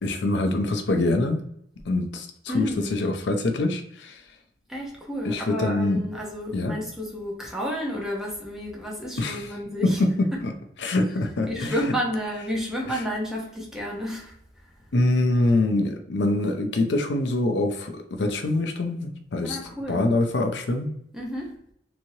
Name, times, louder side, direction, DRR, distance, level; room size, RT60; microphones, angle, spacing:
voice 1, 0.0-1.4 1.9-4.2 5.2-6.0 6.5-6.8 9.2-9.5 9.8-10.5 10.8-11.7 12.9-13.0 14.9-19.6 19.9-20.9, left 2 dB, 75° left, 5 dB, 0.5 m, -24 dB
voice 2, 2.5-2.9 4.7-10.0 10.3-10.4 11.5-14.4 19.4-20.1 21.1-21.6, equal, 5° right, -3 dB, 0.7 m, -31 dB
3.1 x 2.7 x 2.7 m, 0.72 s
head